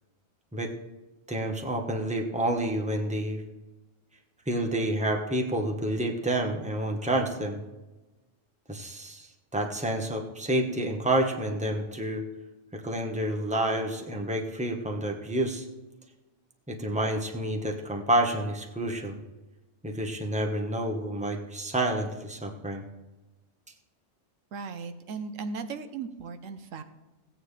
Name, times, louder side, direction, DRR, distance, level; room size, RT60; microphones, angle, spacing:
voice 1, 1.3-3.4 4.5-7.6 8.7-9.3 9.5-12.2 12.7-15.6 16.7-19.2 19.8-22.8, right 1 dB, 5° right, 2 dB, 1.1 m, -29 dB
voice 2, 24.5-26.8, right 4 dB, 85° right, 8 dB, 1.2 m, -37 dB
16.5 x 9.1 x 3.3 m, 1.1 s
omnidirectional pair, 1.3 m